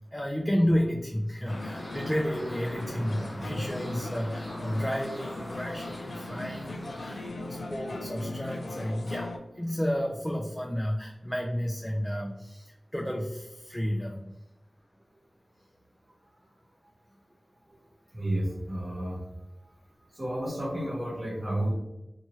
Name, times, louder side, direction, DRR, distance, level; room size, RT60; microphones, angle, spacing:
voice 1, 0.1-14.3, equal, 10° left, 0 dB, 0.4 m, -31 dB
sound 1, 1.4-7.3, equal, 10° right, 0.9 m, -45 dB
sound 2, 1.5-9.4, left 2 dB, 80° left, 0.4 m, -38 dB
voice 2, 18.1-19.2 20.1-21.7, right 1 dB, 40° right, -4 dB, 1.0 m, -31 dB
2.8 x 2.3 x 2.9 m, 0.95 s
wide cardioid pair, 50°, 0 cm